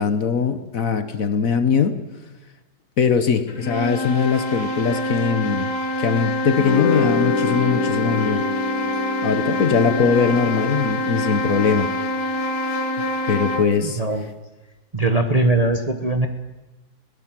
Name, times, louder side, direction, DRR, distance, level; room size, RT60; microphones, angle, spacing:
voice 1, 0.0-2.0 3.0-5.7 6.0-8.4 9.2-11.9 13.3-14.0, left 6 dB, 55° left, 11 dB, 1.4 m, -21 dB
sound 1, 3.5-13.8, left 1 dB, 70° left, 3.0 m, -25 dB
sound 2, 6.6-13.1, left 6 dB, 90° left, 1.7 m, -28 dB
voice 2, 13.8-14.3 14.9-16.3, right 2 dB, 25° right, 6 dB, 1.0 m, -20 dB
21.5 x 17.5 x 7.5 m, 1.1 s
omnidirectional pair, 1.9 m